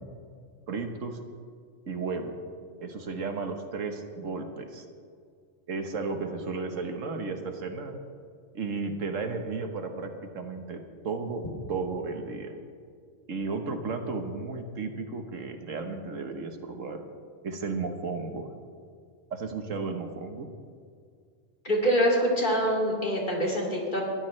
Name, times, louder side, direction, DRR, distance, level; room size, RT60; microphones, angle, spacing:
voice 1, 0.7-1.2 1.9-2.4 2.8-4.8 5.7-8.0 8.5-12.6 13.3-17.0 17.4-18.5 19.3-20.5, right 4 dB, 85° right, 5 dB, 1.6 m, -34 dB
voice 2, 21.6-24.0, equal, 40° left, -2 dB, 2.9 m, -25 dB
21.5 x 14.0 x 3.3 m, 2.2 s
omnidirectional pair, 1.3 m